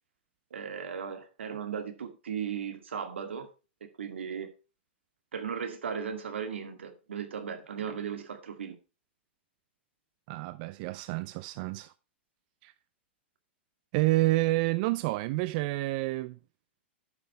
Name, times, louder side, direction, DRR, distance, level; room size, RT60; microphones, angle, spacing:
voice 1, 0.5-3.5 4.0-4.5 5.3-8.8, right 7 dB, 85° right, 2.1 m, -36 dB
voice 2, 10.3-11.9 12.6-12.7 13.9-16.4, right 19 dB, 50° right, 0.5 m, -29 dB
10.5 x 6.0 x 4.5 m
hypercardioid pair, 120°, 6 cm